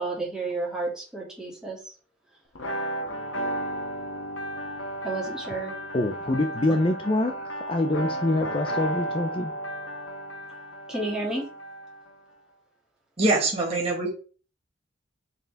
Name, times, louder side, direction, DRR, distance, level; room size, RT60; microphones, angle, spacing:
voice 1, 0.0-1.8 5.0-5.7 6.7-6.8 10.9-11.5, right 2 dB, 5° right, -5 dB, 2.4 m, -31 dB
sound 1, 2.6-12.2, right 1 dB, 80° left, 1.3 m, -34 dB
voice 2, 5.9-9.5, left 2 dB, 25° left, 5 dB, 0.5 m, -25 dB
voice 3, 13.2-14.1, right 2 dB, 30° right, -3 dB, 1.7 m, -23 dB
6.5 x 4.4 x 3.4 m, 0.38 s
head